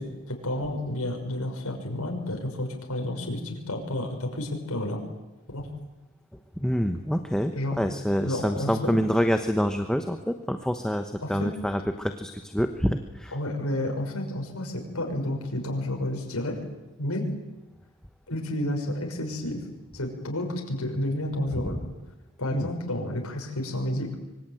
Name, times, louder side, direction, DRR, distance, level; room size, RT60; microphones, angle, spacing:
voice 1, 0.0-5.0 5.5-5.7 7.6-7.9 8.2-9.0 11.2-11.5 13.3-16.6 17.0-17.2 18.3-19.6 19.9-21.8 22.4-24.1, left 1 dB, 90° left, 2 dB, 6.3 m, -30 dB
voice 2, 6.6-13.3 21.5-21.6 22.5-22.7, equal, 5° left, 7 dB, 1.1 m, -27 dB
25.0 x 24.5 x 9.3 m, 1.1 s
head